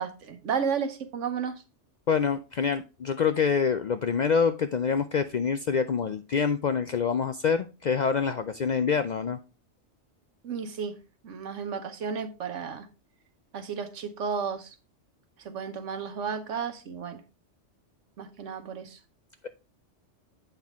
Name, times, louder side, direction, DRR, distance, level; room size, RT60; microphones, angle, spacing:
voice 1, 0.0-1.6 10.4-11.0 11.2-12.9 13.5-14.7 15.4-17.2 18.2-19.0, right 6 dB, 85° right, 1.3 m, -33 dB
voice 2, 2.1-9.4, left 6 dB, 65° left, 0.4 m, -26 dB
8.1 x 5.9 x 3.5 m
omnidirectional pair, 1.2 m